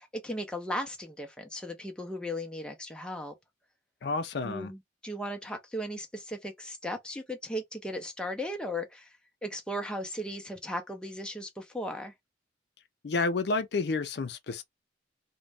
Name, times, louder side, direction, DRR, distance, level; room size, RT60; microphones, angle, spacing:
voice 1, 0.0-3.3 4.4-9.1 9.4-12.1, equal, 5° left, 0.5 m, -36 dB
voice 2, 4.0-4.7 13.0-14.6, left 3 dB, 60° left, 0.4 m, -30 dB
2.5 x 2.1 x 3.2 m
head